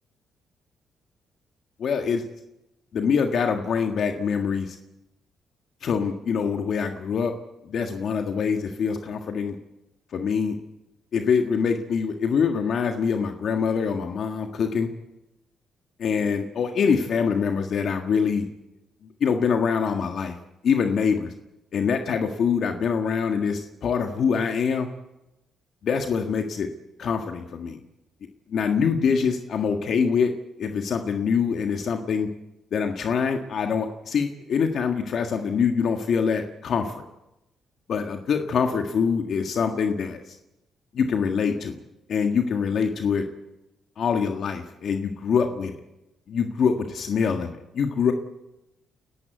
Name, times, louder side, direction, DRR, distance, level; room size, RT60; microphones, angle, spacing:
voice 1, 1.8-2.2 2.9-4.8 5.8-7.3 7.6-9.5 10.1-10.6 11.1-14.9 16.0-18.4 19.2-20.4 20.6-21.3 21.7-24.9 25.8-26.7 27.0-27.8 28.5-30.3 30.6-32.3 32.7-37.0 37.9-40.3 40.9-41.8 42.1-43.2 44.0-45.8 46.3-48.1, left 6 dB, 60° left, 4 dB, 1.7 m, -24 dB
29.5 x 11.5 x 8.2 m, 0.93 s
cardioid pair, 90°, 0 cm